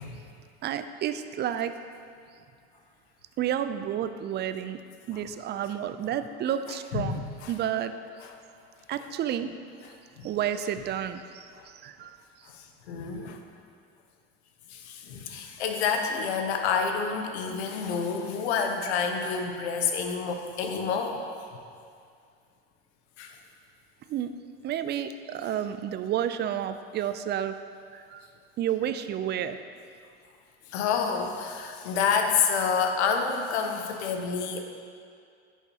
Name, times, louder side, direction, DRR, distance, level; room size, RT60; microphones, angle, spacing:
voice 1, 0.6-1.7 3.4-4.8 5.1-7.2 7.5-7.9 8.9-9.5 10.2-12.2 24.1-24.3 24.6-27.6 27.9-28.3 28.6-29.6, right 10 dB, 35° right, 10 dB, 0.4 m, -30 dB
voice 2, 6.9-7.5 10.2-10.3 11.6-11.7 12.5-13.4 14.7-21.2 23.2-23.4 30.7-34.6, left 6 dB, 85° left, 4 dB, 0.9 m, -28 dB
10.5 x 5.7 x 2.9 m, 2.3 s
hypercardioid pair, 85°, 32 cm